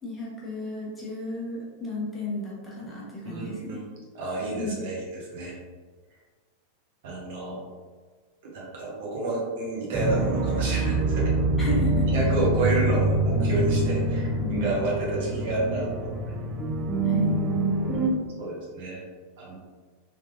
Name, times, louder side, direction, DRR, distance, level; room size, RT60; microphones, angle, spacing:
voice 1, 0.0-3.8 4.6-4.8 10.3-10.5 11.6-12.2 14.4-14.7 17.0-17.3, left 1 dB, 15° left, -5 dB, 1.0 m, -33 dB
voice 2, 3.2-3.8 4.1-5.6 7.0-7.6 8.5-11.3 12.1-16.2 18.4-19.0 19.4-19.5, right 2 dB, 55° right, -4 dB, 1.1 m, -30 dB
sound 1, 9.9-18.1, right 2 dB, 20° right, 0.6 m, -25 dB
3.5 x 3.2 x 2.6 m, 1.4 s
figure-of-eight pair, 90°, 0 cm